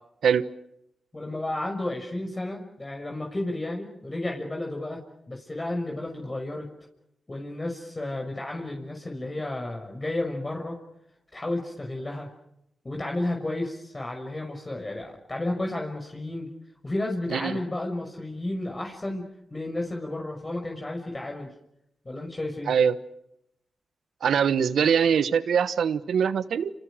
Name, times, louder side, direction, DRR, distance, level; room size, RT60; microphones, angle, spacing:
voice 1, 1.1-5.0 5.3-6.7 7.3-10.8 11.3-12.3 12.8-16.5 16.8-19.2 19.5-21.5 22.0-22.7, left 1 dB, 30° left, 1 dB, 6.1 m, -32 dB
voice 2, 17.3-17.6 22.7-23.0 24.2-26.7, right 7 dB, 85° right, 14 dB, 1.2 m, -23 dB
29.0 x 26.5 x 6.5 m, 0.81 s
cardioid pair, 45°, 0 cm